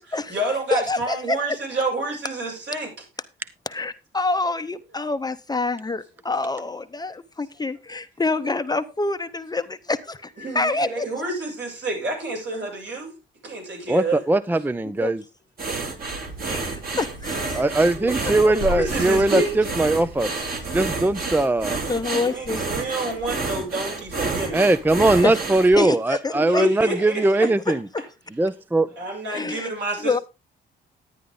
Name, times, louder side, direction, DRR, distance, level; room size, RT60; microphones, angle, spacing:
voice 1, 0.0-3.0 10.4-13.1 13.4-14.2 17.3-19.7 20.4-20.9 22.2-24.7 26.3-28.1 29.0-30.2, right 2 dB, 65° right, 7.7 m, -29 dB
voice 2, 0.7-1.4 3.7-11.1 15.0-15.1 16.5-17.7 18.4-18.5 20.4-20.6 21.9-22.7 24.2-24.3 25.2-25.4 25.8-26.7 29.3-29.7 30.0-30.2, left 3 dB, 20° left, 0.8 m, -27 dB
voice 3, 13.9-15.2 17.5-19.4 19.8-20.3 20.7-21.8 24.5-27.8 28.4-28.9, right 2 dB, 10° right, 0.5 m, -20 dB
sound 1, 15.6-25.8, right 3 dB, 45° right, 3.3 m, -30 dB
sound 2, 16.0-21.4, equal, 85° right, 2.4 m, -37 dB
11.0 x 10.0 x 3.8 m
cardioid pair, 90°, 20 cm